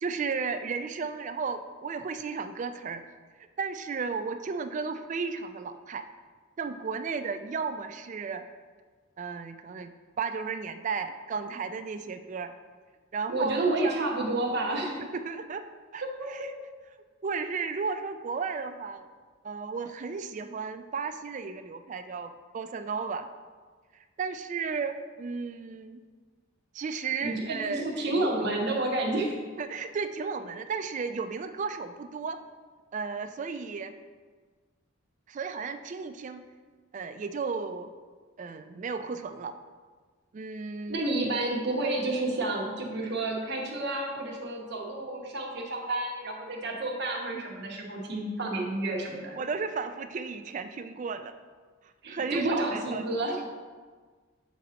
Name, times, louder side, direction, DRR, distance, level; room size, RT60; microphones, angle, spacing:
voice 1, 0.0-3.0 3.6-6.1 6.6-8.4 9.2-12.5 13.1-14.0 15.0-15.7 15.9-16.4 17.2-19.1 19.4-23.3 24.2-26.0 26.7-28.3 29.6-32.4 32.9-33.9 35.3-36.4 36.9-37.9 38.4-39.6 40.3-41.0 49.3-51.3 52.1-53.0, right 5 dB, 35° right, 9 dB, 0.3 m, -34 dB
voice 2, 13.3-15.0 16.2-16.5 27.2-29.4 40.9-49.4 52.0-53.5, right 2 dB, 55° right, -1 dB, 1.0 m, -30 dB
8.1 x 2.8 x 5.0 m, 1.5 s
head